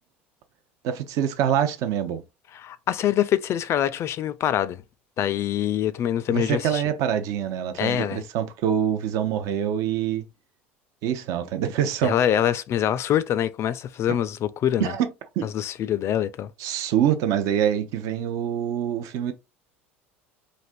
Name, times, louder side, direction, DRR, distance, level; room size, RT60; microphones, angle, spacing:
voice 1, 0.8-2.2 6.3-10.2 11.0-12.2 14.8-15.1 15.4-15.5 16.6-19.3, right 9 dB, 60° right, 0.5 m, -25 dB
voice 2, 2.5-4.8 5.2-6.8 7.8-8.2 12.0-14.9 15.4-16.5, left 10 dB, 45° left, 0.3 m, -24 dB
3.2 x 2.5 x 2.5 m
hypercardioid pair, 75°, 7 cm